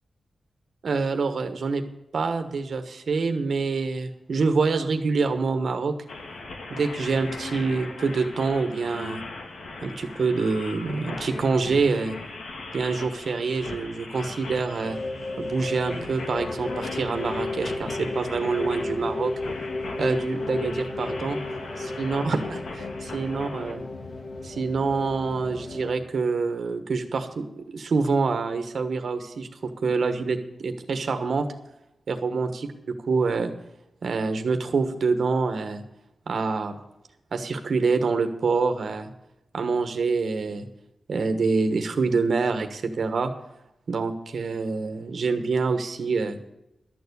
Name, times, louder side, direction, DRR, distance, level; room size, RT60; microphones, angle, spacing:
voice 1, 0.8-1.8 2.1-5.9 6.7-9.2 9.8-12.1 12.7-15.0 15.4-19.3 20.0-21.4 22.0-23.8 24.4-30.4 30.6-31.5 32.1-32.5 33.1-33.5 34.0-35.8 36.3-36.7 37.3-39.1 39.5-40.7 41.1-43.3 43.9-46.4, right 4 dB, 60° right, 7 dB, 1.2 m, -26 dB
sound 1, 6.1-23.7, left 3 dB, 85° left, 2.1 m, -38 dB
sound 2, 14.8-25.9, left 2 dB, 55° left, 1.6 m, -33 dB
12.0 x 7.0 x 8.2 m, 0.87 s
wide cardioid pair, 175°, 0 cm